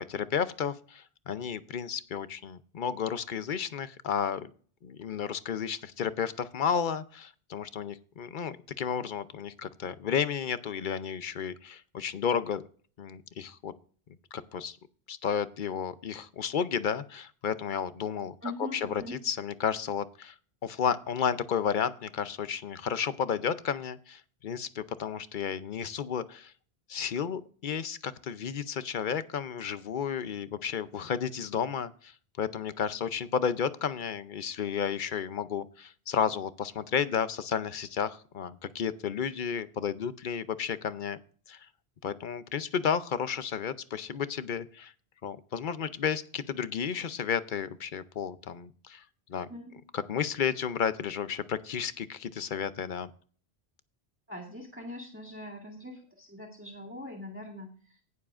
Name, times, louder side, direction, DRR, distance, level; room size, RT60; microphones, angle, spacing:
voice 1, 0.0-4.5 4.8-12.6 13.0-13.7 14.5-14.8 15.1-18.3 18.7-20.3 20.6-26.5 26.9-32.1 32.4-41.2 41.5-41.6 42.0-44.9 45.2-49.0 49.3-49.5 49.9-53.1, left 7 dB, 55° left, 13 dB, 0.7 m, -32 dB
voice 2, 18.4-19.2 49.5-49.8 54.3-58.0, left 1 dB, 10° right, -2 dB, 2.0 m, -42 dB
18.0 x 7.2 x 2.5 m, 0.43 s
omnidirectional pair, 1.1 m